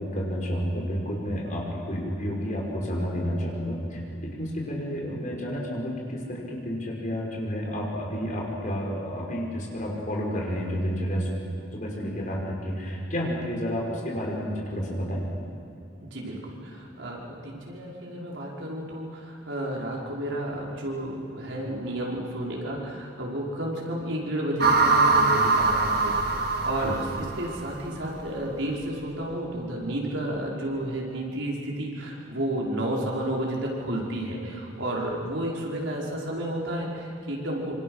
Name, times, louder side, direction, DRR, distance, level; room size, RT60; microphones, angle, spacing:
voice 1, 0.0-11.3 11.7-15.2 26.8-26.9, equal, 40° left, -1 dB, 5.1 m, -30 dB
voice 2, 16.0-37.7, right 1 dB, 85° right, -3 dB, 5.0 m, -31 dB
sound 1, 24.6-27.9, right 3 dB, 55° right, 2.1 m, -23 dB
26.0 x 26.0 x 6.5 m, 2.5 s
head